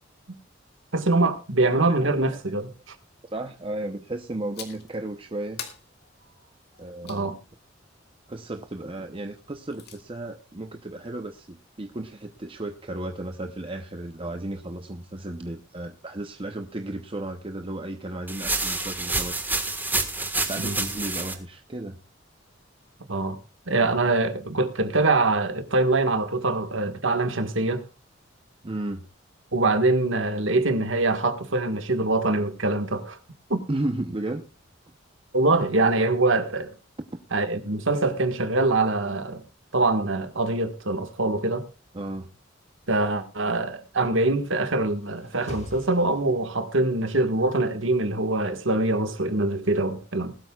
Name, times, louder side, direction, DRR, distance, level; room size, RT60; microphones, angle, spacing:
voice 1, 0.9-3.0 7.0-7.4 20.6-20.8 23.1-23.4 23.7-27.8 29.5-33.2 33.5-33.6 35.3-36.7 37.3-39.4 39.7-41.7 42.9-50.4, right 2 dB, 75° right, 1.7 m, -24 dB
voice 2, 1.8-2.4 3.3-5.6 6.8-7.3 8.3-19.5 20.4-22.0 28.6-29.0 33.7-34.5 41.9-42.3, right 1 dB, 30° right, 0.8 m, -34 dB
sound 1, 4.5-5.0 5.6-7.3 9.4-10.0, left 8 dB, 55° left, 2.4 m, -42 dB
sound 2, 18.3-21.3, right 3 dB, 10° right, 1.5 m, -28 dB
sound 3, 44.8-46.9, left 1 dB, 35° left, 2.1 m, -45 dB
20.0 x 12.5 x 2.4 m
head